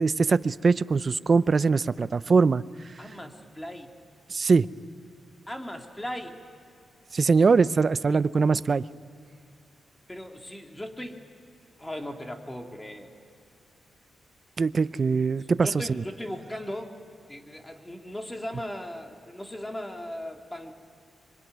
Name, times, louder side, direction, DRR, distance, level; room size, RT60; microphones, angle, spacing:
voice 1, 0.0-2.6 4.3-4.7 7.1-8.8 14.6-15.8, right 4 dB, 45° right, 16 dB, 0.6 m, -22 dB
voice 2, 3.0-3.9 5.5-6.4 10.1-11.3 11.8-13.1 15.5-16.9 17.3-20.7, left 1 dB, 10° left, 3 dB, 2.6 m, -38 dB
25.0 x 24.0 x 9.5 m, 2.5 s
cardioid pair, 90°, 0 cm